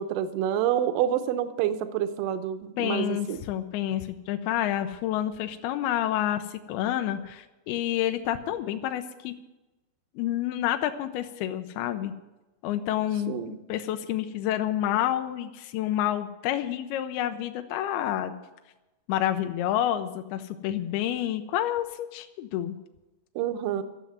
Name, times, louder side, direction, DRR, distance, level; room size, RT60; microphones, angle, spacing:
voice 1, 0.0-3.4 13.3-13.6 23.4-23.8, right 10 dB, 75° right, 10 dB, 2.1 m, -28 dB
voice 2, 2.8-9.3 10.2-12.1 12.6-18.4 19.1-22.8, left 12 dB, 80° left, 7 dB, 2.6 m, -29 dB
12.5 x 7.6 x 9.3 m, 1.1 s
omnidirectional pair, 4.7 m